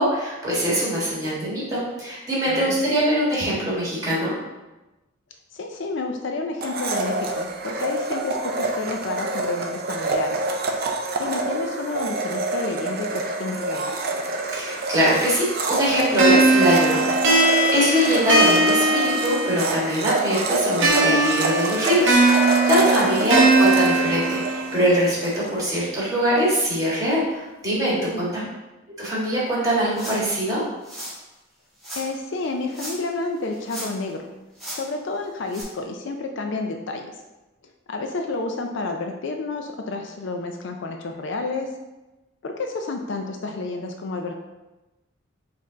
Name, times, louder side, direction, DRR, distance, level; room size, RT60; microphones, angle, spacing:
voice 1, 0.0-4.3 14.5-28.4 29.0-30.6, equal, 15° right, -7 dB, 1.5 m, -23 dB
voice 2, 2.5-2.8 5.5-10.4 10.8-14.0 23.0-23.3 28.1-28.5 31.9-34.2 34.7-37.1 37.9-41.7 42.4-44.3, left 3 dB, 60° left, 4 dB, 0.4 m, -30 dB
Domestic sounds home sounds, 6.6-25.4, right 2 dB, 45° right, 0.4 m, -27 dB
sound 1, 16.2-19.8 20.8-24.8, right 2 dB, 65° right, 0.9 m, -20 dB
sound 2, 29.9-30.4 30.8-31.2 31.8-32.1 32.7-33.1 33.4-34.1 34.6-34.8 35.5-35.6, equal, ahead, 1.5 m, -36 dB
5.3 x 2.6 x 3.8 m, 1.1 s
head